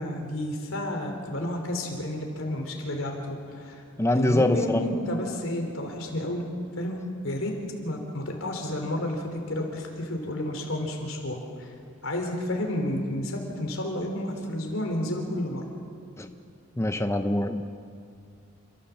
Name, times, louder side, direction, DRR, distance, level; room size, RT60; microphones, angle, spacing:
voice 1, 0.0-3.8 4.2-6.4 6.8-7.5 7.8-11.7 12.0-15.6, left 1 dB, 80° left, 2 dB, 3.9 m, -31 dB
voice 2, 4.0-4.8 16.2-16.3 16.8-17.6, left 1 dB, 15° left, 7 dB, 0.7 m, -24 dB
28.5 x 14.5 x 7.4 m, 2.4 s
head